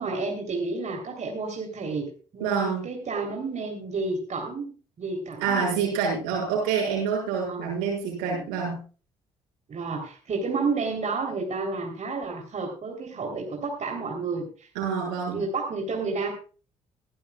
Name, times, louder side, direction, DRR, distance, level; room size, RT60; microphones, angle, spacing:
voice 1, 0.0-4.7 5.0-5.7 7.5-7.7 9.7-14.7 15.3-16.3, right 4 dB, 50° right, 1 dB, 3.5 m, -31 dB
voice 2, 2.4-2.8 5.4-8.8 14.7-15.4, right 6 dB, 85° right, -2 dB, 6.5 m, -27 dB
20.5 x 11.5 x 2.4 m, 0.37 s
hypercardioid pair, 50°, 15 cm